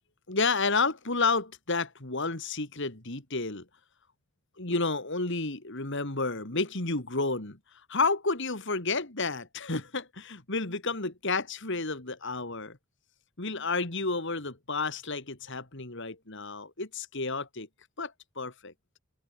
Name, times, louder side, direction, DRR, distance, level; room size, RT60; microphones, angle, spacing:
voice 1, 0.3-3.6 4.6-7.6 7.9-12.8 13.4-17.7 18.0-18.7, left 3 dB, 55° left, 2.7 m, -31 dB
head